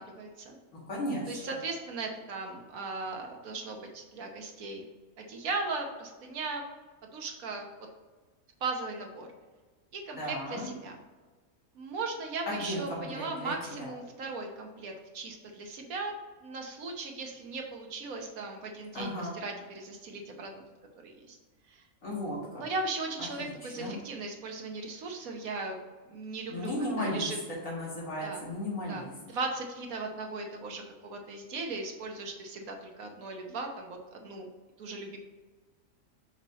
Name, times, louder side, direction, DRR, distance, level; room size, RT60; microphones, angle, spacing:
voice 1, 0.0-0.6 1.3-4.8 5.2-6.6 7.1-7.7 8.6-9.3 9.9-11.0 11.7-16.1 16.4-20.6 21.0-21.4 21.7-21.8 22.6-25.8 26.1-26.7 27.0-27.4 28.2-28.5 28.9-34.5 34.8-35.2, right 3 dB, 85° right, 3 dB, 1.4 m, -37 dB
voice 2, 0.7-1.4 10.2-10.7 12.5-13.9 18.9-19.4 22.0-22.6 23.4-24.0 26.5-29.1, left 1 dB, 70° left, -6 dB, 2.5 m, -35 dB
5.9 x 4.2 x 4.1 m, 1.3 s
omnidirectional pair, 1.4 m